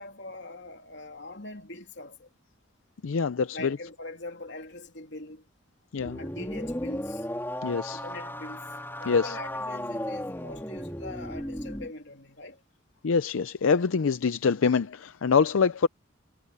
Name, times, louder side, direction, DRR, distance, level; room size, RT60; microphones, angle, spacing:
voice 1, 0.0-2.3 3.5-5.4 6.2-7.3 7.9-8.7 9.0-12.6, left 2 dB, 60° left, 2.9 m, -42 dB
voice 2, 3.0-3.8 5.9-6.2 7.6-8.0 9.1-9.4 13.0-15.9, left 5 dB, 85° left, 0.5 m, -25 dB
sound 1, 6.0-11.9, left 1 dB, 10° left, 3.5 m, -35 dB
head